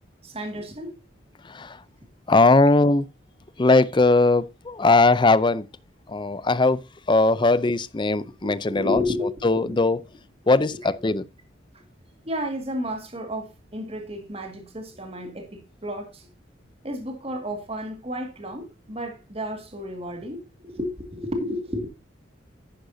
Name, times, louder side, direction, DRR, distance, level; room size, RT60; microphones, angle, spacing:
voice 1, 0.2-1.0 8.4-9.8 10.4-10.8 11.7-11.8 12.2-16.3 16.8-21.9, left 1 dB, 30° right, 1.9 m, -32 dB
voice 2, 2.3-3.1 3.6-5.7 6.1-6.8 7.1-9.0 9.4-10.0 10.5-11.2, left 3 dB, 25° left, 0.5 m, -19 dB
10.5 x 9.9 x 2.7 m
head